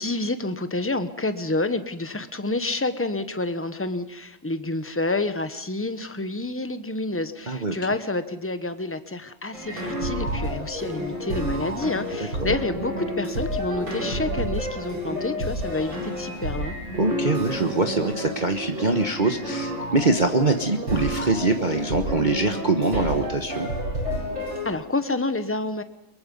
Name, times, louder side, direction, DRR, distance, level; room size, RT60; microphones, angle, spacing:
voice 1, 0.0-16.7 24.6-25.8, left 2 dB, 10° left, 10 dB, 0.7 m, -28 dB
voice 2, 7.5-7.8 12.4-12.5 17.0-23.7, right 2 dB, 25° right, 4 dB, 1.3 m, -23 dB
sound 1, 9.5-24.7, equal, 80° right, 8.4 m, -30 dB
24.0 x 22.5 x 5.5 m, 0.88 s
omnidirectional pair, 2.1 m